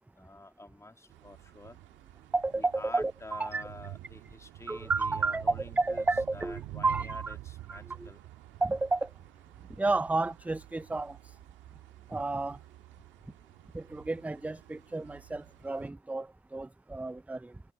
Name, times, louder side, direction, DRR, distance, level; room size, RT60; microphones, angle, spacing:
voice 1, 0.2-1.8 2.6-6.1 6.3-8.2, left 2 dB, 15° left, 2.3 m, -48 dB
sound 1, 1.1-15.9, right 16 dB, 75° right, 1.7 m, -48 dB
voice 2, 2.3-3.6 4.7-7.4 7.7-8.1 8.6-9.1 9.7-11.4 12.1-12.6 13.7-17.6, right 3 dB, 5° right, 0.5 m, -31 dB
hypercardioid pair, 50°, 20 cm